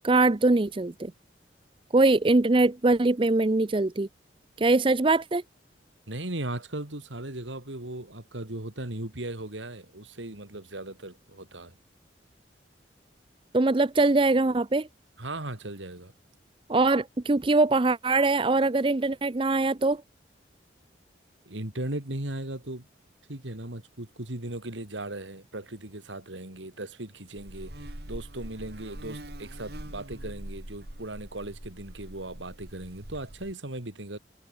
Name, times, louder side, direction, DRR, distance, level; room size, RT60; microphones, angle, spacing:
voice 1, 0.0-1.1 1.9-4.1 4.6-5.4 13.5-14.9 16.7-20.0, right 2 dB, 30° right, 0.6 m, -22 dB
voice 2, 6.1-11.7 15.2-16.1 21.4-22.9 23.3-34.2, right 1 dB, 85° right, 3.3 m, -37 dB
Buzz, 27.4-33.5, right 1 dB, 60° right, 3.5 m, -43 dB
head